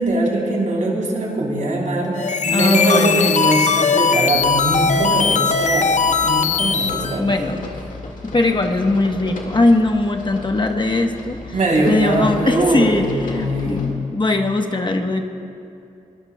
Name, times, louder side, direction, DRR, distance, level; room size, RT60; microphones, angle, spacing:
voice 1, 0.0-5.9 6.2-7.2 11.5-13.9, right 1 dB, 70° right, -2 dB, 3.4 m, -21 dB
sound 1, 2.1-7.2, left 5 dB, 60° left, 0.6 m, -19 dB
voice 2, 2.5-3.3 7.2-7.6 8.2-11.4 11.9-15.3, left 2 dB, 35° left, 4 dB, 1.1 m, -20 dB
sound 2, 4.3-13.9, left 3 dB, 80° left, 1.9 m, -35 dB
22.5 x 18.0 x 2.3 m, 2.6 s
cardioid pair, 60°, 14 cm